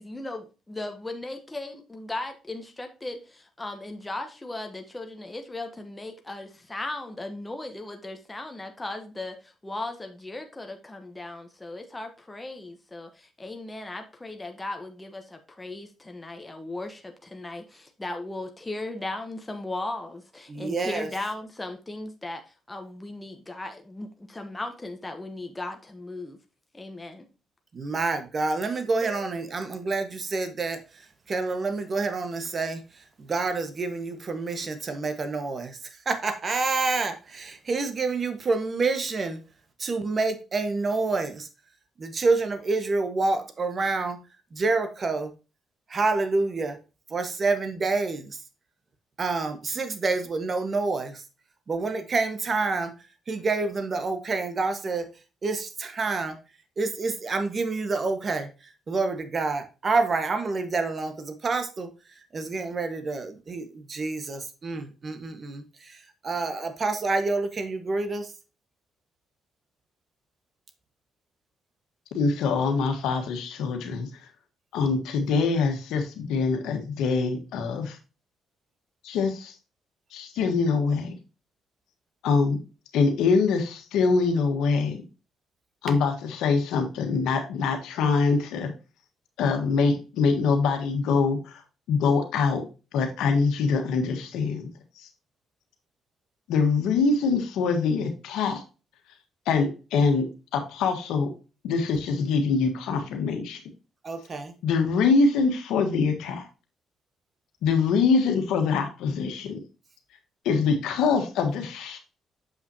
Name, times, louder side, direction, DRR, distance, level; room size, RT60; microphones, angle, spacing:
voice 1, 0.0-26.4 26.7-27.3, left 2 dB, 15° left, 5 dB, 1.1 m, -37 dB
voice 2, 20.5-21.1 27.7-30.8 31.3-32.8 33.3-35.8 36.0-39.4 39.8-41.5 42.0-44.2 44.5-45.3 45.9-46.8 47.1-48.3 49.2-51.2 51.7-52.9 53.3-55.1 55.4-56.3 56.8-58.5 58.9-61.9 62.3-65.6 66.2-68.3 104.0-104.5, right 3 dB, 40° right, 8 dB, 1.4 m, -27 dB
voice 3, 72.1-74.1 74.7-78.0 79.0-79.5 80.1-81.1 82.2-82.6 82.9-85.0 85.8-88.7 89.4-91.5 91.9-92.6 92.9-94.7 96.5-98.6 99.5-100.3 100.5-101.3 101.6-103.6 104.6-106.4 107.6-109.6 110.4-112.0, left 4 dB, 90° left, 6 dB, 1.4 m, -24 dB
7.3 x 5.8 x 2.8 m, 0.32 s
cardioid pair, 90°, 0 cm